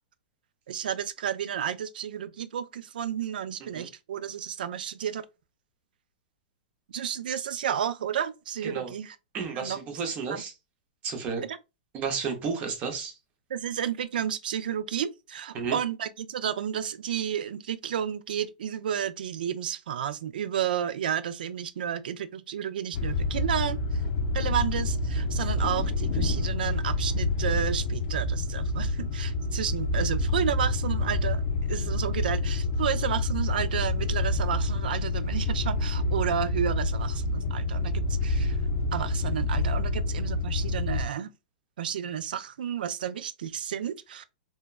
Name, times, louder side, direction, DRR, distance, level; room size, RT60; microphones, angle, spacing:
voice 1, 0.7-5.3 6.9-9.2 9.5-10.0 10.3-10.4 11.4-11.6 13.5-23.8 24.3-31.4 31.7-38.6 38.9-41.3 41.8-44.2, right 9 dB, 75° right, 0.4 m, -31 dB
voice 2, 8.6-8.9 9.3-10.5 11.0-11.4 11.9-13.1 15.5-15.8, right 5 dB, 25° right, 0.7 m, -32 dB
sound 1, 22.9-41.1, left 2 dB, 45° left, 0.5 m, -28 dB
3.2 x 2.2 x 2.3 m
hypercardioid pair, 150°, 5 cm